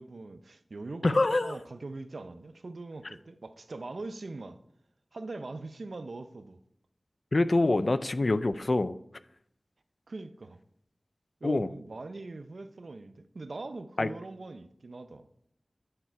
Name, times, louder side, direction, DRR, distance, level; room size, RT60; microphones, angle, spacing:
voice 1, 0.0-4.6 5.1-6.6 10.1-10.6 11.4-15.3, right 3 dB, 80° right, 10 dB, 0.5 m, -42 dB
voice 2, 1.0-1.6 7.3-8.9 11.4-11.7 14.0-14.1, left 2 dB, 60° left, 13 dB, 0.4 m, -25 dB
8.7 x 5.8 x 4.5 m, 0.75 s
wide cardioid pair, 50°, 0 cm